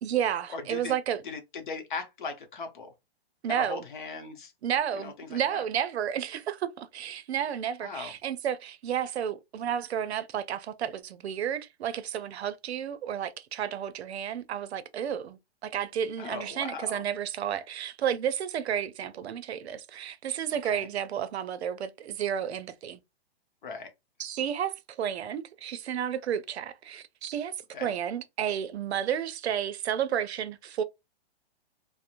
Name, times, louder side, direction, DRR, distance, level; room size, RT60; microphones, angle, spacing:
voice 1, 0.0-1.2 3.4-3.8 4.6-23.0 24.2-27.5 27.8-30.8, right 9 dB, 90° right, 0.5 m, -31 dB
voice 2, 0.5-0.9 1.2-2.9 3.5-4.5 4.9-5.6 7.8-8.1 16.2-17.0 20.5-20.9 23.6-23.9 27.7-27.9, left 4 dB, 50° left, 0.7 m, -38 dB
2.9 x 2.0 x 2.4 m
hypercardioid pair, 175°, 31 cm